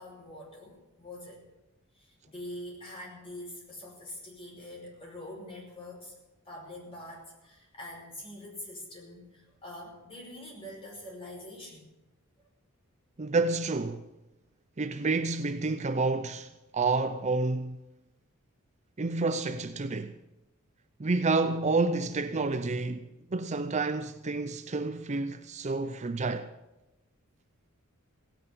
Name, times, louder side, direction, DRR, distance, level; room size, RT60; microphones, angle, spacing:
voice 1, 0.0-1.4 2.0-11.9, left 1 dB, 25° left, 5.3 m, -44 dB
voice 2, 13.2-14.0 14.8-17.8 19.0-20.1 21.0-26.5, right 3 dB, 30° right, 0.5 m, -29 dB
17.0 x 9.1 x 8.1 m
head